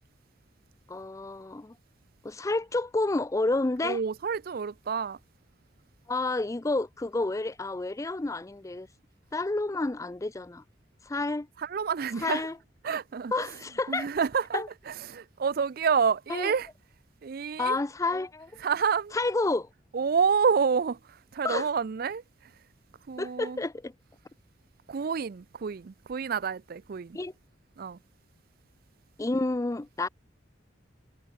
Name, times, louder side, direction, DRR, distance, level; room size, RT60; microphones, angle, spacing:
voice 1, 0.9-1.7 2.2-4.0 6.1-8.9 9.3-10.6 11.1-11.5 12.2-12.6 13.3-14.1 14.5-14.7 16.3-16.5 17.6-18.5 19.1-19.7 21.4-21.7 23.2-23.9 27.1-27.3 29.2-30.1, left 2 dB, 15° left, 0.4 m, -29 dB
voice 2, 3.8-5.2 11.6-12.5 12.8-13.3 13.9-16.7 17.2-17.8 18.6-19.1 19.9-21.0 21.3-22.2 23.1-23.6 24.9-27.2 27.8-28.0, right 6 dB, 50° right, 0.4 m, -28 dB
head